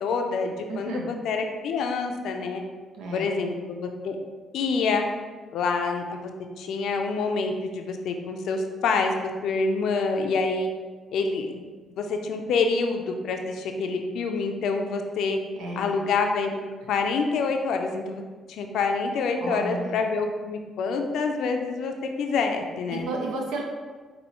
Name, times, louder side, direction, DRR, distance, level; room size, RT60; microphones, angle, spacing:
voice 1, 0.0-2.6 3.1-4.2 4.5-5.1 5.5-6.2 6.6-9.1 9.4-10.7 11.1-11.6 12.0-15.4 15.8-16.6 16.9-18.2 18.5-23.1, left 4 dB, 80° left, 4 dB, 0.4 m, -27 dB
voice 2, 0.7-1.1 2.9-3.3 15.5-16.0 19.4-20.0 22.9-23.6, right 2 dB, 85° right, 0 dB, 0.8 m, -32 dB
5.4 x 2.7 x 2.9 m, 1.4 s
cardioid pair, 90°, 0 cm